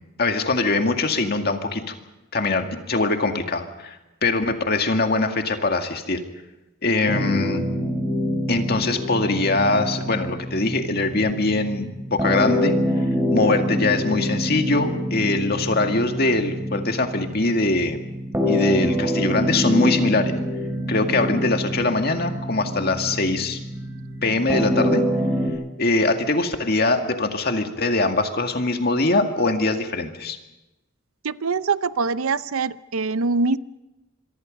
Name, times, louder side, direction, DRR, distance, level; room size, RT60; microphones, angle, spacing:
voice 1, 0.2-1.9 2.3-6.2 6.8-7.6 8.5-12.8 13.3-18.0 18.5-20.3 20.9-23.6 24.2-25.0 25.8-30.4, left 2 dB, 50° left, 5 dB, 2.1 m, -22 dB
sound 1, 7.1-25.5, equal, 10° right, 4.2 m, -26 dB
voice 2, 31.2-33.6, right 4 dB, 90° right, 15 dB, 0.7 m, -23 dB
26.0 x 23.5 x 5.3 m, 1.0 s
head